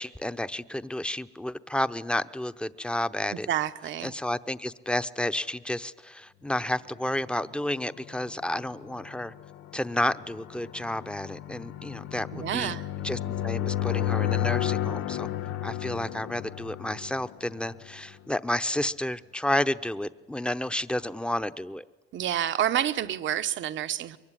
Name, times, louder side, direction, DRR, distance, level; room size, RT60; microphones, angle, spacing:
voice 1, 0.0-3.5 4.0-9.3 9.7-12.7 13.0-15.3 15.6-21.8, left 1 dB, 5° left, 12 dB, 0.8 m, -31 dB
voice 2, 3.3-4.1 12.3-12.9 22.1-24.2, right 11 dB, 70° right, 10 dB, 1.0 m, -29 dB
sound 1, 7.5-18.1, left 12 dB, 85° left, 0.8 m, -33 dB
23.5 x 23.0 x 10.0 m, 1.2 s
cardioid pair, 90°, 20 cm